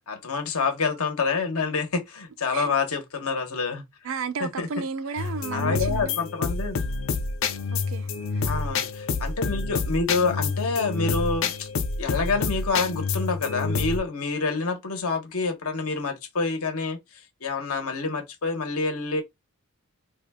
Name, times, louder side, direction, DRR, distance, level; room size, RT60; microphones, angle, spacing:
voice 1, 0.1-3.9 4.4-4.7 5.5-6.8 8.4-11.7 12.0-19.2, left 4 dB, 80° left, 1.1 m, -27 dB
voice 2, 4.0-6.2 7.7-8.4, right 5 dB, 60° right, 0.5 m, -33 dB
sound 1, 5.2-14.0, left 4 dB, 60° left, 0.6 m, -28 dB
3.5 x 2.3 x 3.5 m
head